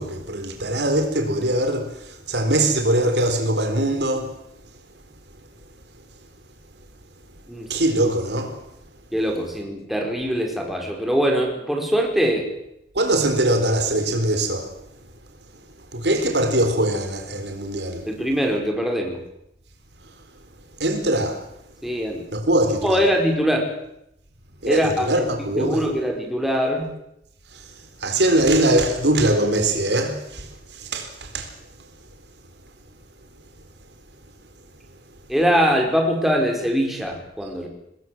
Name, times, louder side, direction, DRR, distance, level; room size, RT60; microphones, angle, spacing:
voice 1, 0.0-4.4 7.7-8.6 12.9-14.7 15.9-18.1 20.8-21.4 22.3-23.0 24.6-25.9 27.5-27.6 28.0-31.5, right 1 dB, 70° right, 4.2 m, -22 dB
voice 2, 9.1-12.5 18.1-19.2 21.8-22.2 22.8-23.7 24.7-25.3 25.6-26.9 35.3-37.7, equal, ahead, 5.0 m, -22 dB
25.5 x 20.5 x 7.8 m
head